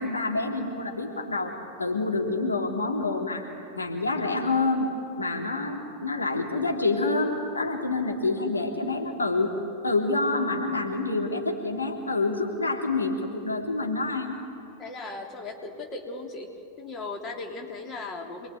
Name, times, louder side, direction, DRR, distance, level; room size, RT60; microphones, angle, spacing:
voice 1, 0.0-1.5 1.8-3.5 3.8-4.9 5.2-9.5 9.8-14.3, left 3 dB, 80° left, 1 dB, 3.1 m, -27 dB
voice 2, 14.8-16.5 16.8-18.5, left 3 dB, 30° left, 3 dB, 3.2 m, -37 dB
27.5 x 21.5 x 9.3 m, 2.6 s
figure-of-eight pair, 90°, 0 cm